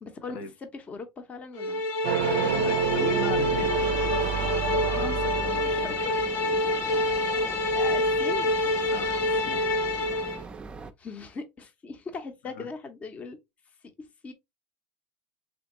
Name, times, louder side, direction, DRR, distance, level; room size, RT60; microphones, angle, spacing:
voice 1, 0.0-1.8 2.3-2.8 5.5-6.1 6.4-6.7 7.4-8.5 11.0-13.4 14.2-14.3, left 4 dB, 25° left, 0.8 m, -39 dB
sound 1, 1.6-10.4, left 2 dB, 55° left, 0.8 m, -27 dB
sound 2, 2.0-6.2, right 11 dB, 80° right, 0.4 m, -29 dB
sound 3, 2.2-10.9, right 4 dB, 20° right, 0.5 m, -41 dB
voice 2, 2.4-3.9 4.8-5.9 8.9-9.6 12.6-12.7, left 4 dB, 80° left, 1.0 m, -38 dB
3.5 x 3.4 x 2.9 m
supercardioid pair, 125°, 5 cm